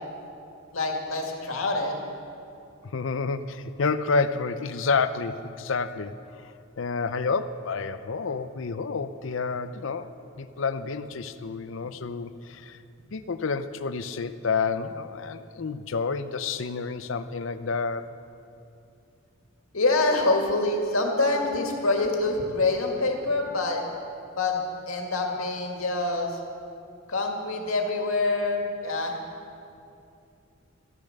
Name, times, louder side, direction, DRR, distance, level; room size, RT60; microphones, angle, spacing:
voice 1, 0.7-2.0 19.7-23.8 24.3-24.6 24.9-26.4 27.1-29.2, left 2 dB, 85° left, 2 dB, 2.1 m, -26 dB
voice 2, 2.9-6.2 6.8-12.8 13.1-18.1, left 4 dB, 65° left, 12 dB, 0.6 m, -29 dB
14.0 x 12.0 x 6.6 m, 2.6 s
head